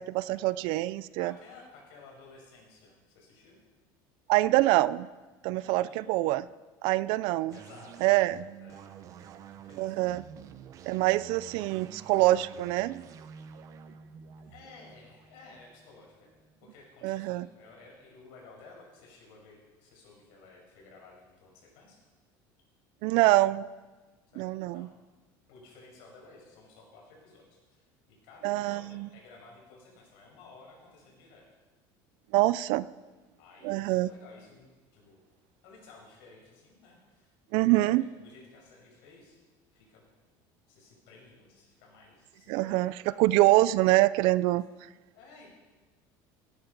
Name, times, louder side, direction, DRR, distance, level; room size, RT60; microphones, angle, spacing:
voice 1, 0.0-1.3 4.3-5.1 5.4-6.4 6.8-7.5 8.0-8.4 9.8-10.2 10.9-13.0 17.0-17.5 23.0-23.7 24.4-24.9 28.4-29.1 32.3-32.9 33.6-34.1 37.5-38.1 42.5-44.6, right 17 dB, 60° right, 18 dB, 0.4 m, -25 dB
voice 2, 1.2-3.6 5.5-6.3 6.8-10.2 13.3-13.7 14.4-16.3 16.6-22.0 24.3-24.9 25.5-31.4 33.4-35.2 35.6-39.4 39.7-40.1 40.7-43.3 45.1-45.5, left 3 dB, 70° left, -1 dB, 5.7 m, -55 dB
sound 1, 7.5-16.9, right 8 dB, 35° right, 0.7 m, -49 dB
17.0 x 10.5 x 5.3 m, 1.2 s
cardioid pair, 165°, 10 cm